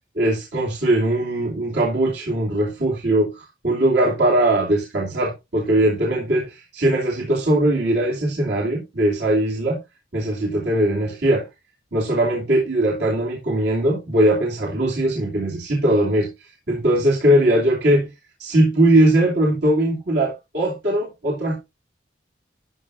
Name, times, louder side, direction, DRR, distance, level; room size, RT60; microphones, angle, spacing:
voice 1, 0.2-9.8 10.1-11.5 11.9-18.1 18.4-21.6, right 1 dB, 65° right, 2.7 m, -20 dB
13.0 x 6.1 x 2.6 m
head